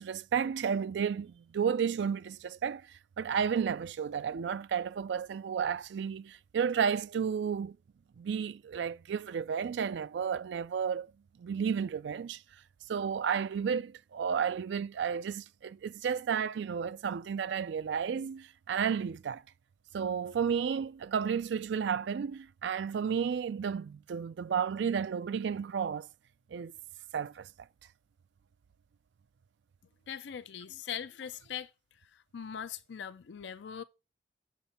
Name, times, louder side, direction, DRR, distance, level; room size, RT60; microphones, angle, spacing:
voice 1, 0.0-2.9 3.2-7.8 8.2-11.1 11.4-12.4 12.9-19.4 19.9-26.1 26.5-26.7 27.1-27.5, right 7 dB, 70° right, 0.3 m, -32 dB
voice 2, 30.1-31.7 32.3-33.8, left 8 dB, 70° left, 0.4 m, -40 dB
7.2 x 6.8 x 4.2 m
head